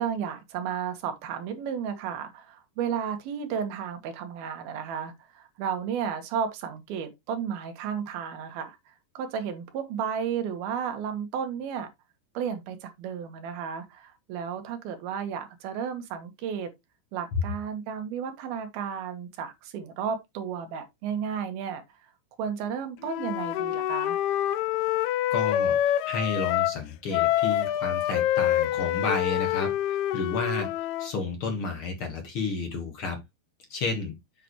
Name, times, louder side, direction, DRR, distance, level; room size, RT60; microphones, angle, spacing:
voice 1, 0.0-8.8 9.1-11.9 12.3-16.7 17.1-21.8 22.4-24.2, right 7 dB, 65° right, 3.0 m, -33 dB
Wind instrument woodwind instrument, 23.0-26.8 27.1-31.1, left 12 dB, 85° left, 2.3 m, -26 dB
voice 2, 25.3-33.2 33.7-34.1, left 3 dB, 70° left, 1.2 m, -31 dB
7.6 x 6.8 x 3.1 m
omnidirectional pair, 5.1 m